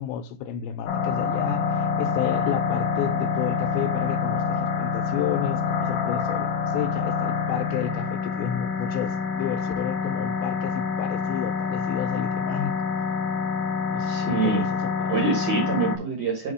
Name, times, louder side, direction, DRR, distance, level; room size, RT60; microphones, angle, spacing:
voice 1, 0.0-12.8 13.9-15.1, left 10 dB, 80° left, 2.4 m, -31 dB
sound 1, 0.9-16.0, left 5 dB, 65° left, 2.3 m, -26 dB
voice 2, 14.1-14.7 15.1-16.5, right 4 dB, 60° right, 1.9 m, -25 dB
8.0 x 2.8 x 4.8 m
omnidirectional pair, 4.5 m